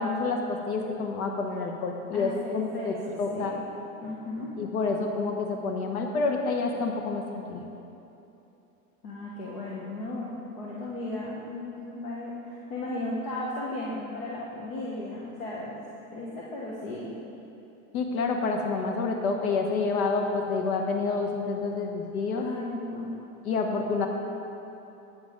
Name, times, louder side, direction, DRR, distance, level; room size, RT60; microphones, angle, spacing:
voice 1, 0.0-3.5 4.6-7.6 17.9-22.4 23.5-24.1, left 4 dB, 85° left, 3 dB, 1.1 m, -28 dB
voice 2, 2.1-3.6 4.0-4.5 9.0-10.3 10.6-15.8 16.1-17.2 22.3-23.1, left 2 dB, 45° left, -5 dB, 1.1 m, -35 dB
9.0 x 7.4 x 5.0 m, 2.9 s
supercardioid pair, 180°, 43 cm